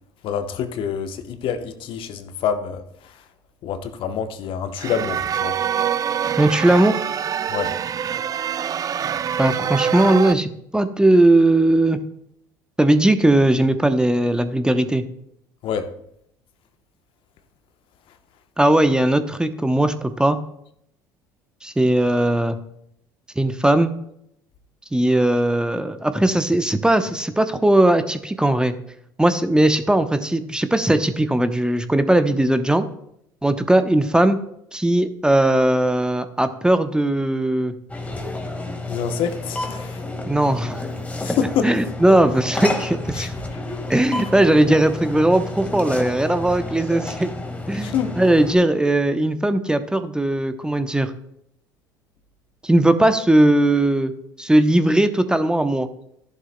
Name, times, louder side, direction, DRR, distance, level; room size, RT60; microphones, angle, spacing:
voice 1, 0.2-2.8 3.6-5.6 7.5-7.7 15.6-15.9 38.9-40.0 41.2-41.7 43.2-43.3 47.8-48.2, left 7 dB, 55° left, 0.9 m, -26 dB
sound 1, 4.8-10.3, right 8 dB, 35° right, 0.4 m, -25 dB
voice 2, 6.4-7.0 9.4-12.0 12.8-15.0 18.6-20.4 21.6-22.6 23.4-23.9 24.9-28.7 29.2-32.9 33.4-34.4 34.7-37.7 40.3-40.9 41.6-43.3 43.9-47.3 47.7-51.1 52.6-54.1 54.4-55.9, right 1 dB, 5° right, 0.8 m, -18 dB
sound 2, 37.9-48.5, left 2 dB, 15° left, 1.7 m, -30 dB
14.5 x 11.0 x 2.2 m
hypercardioid pair, 65°, 11 cm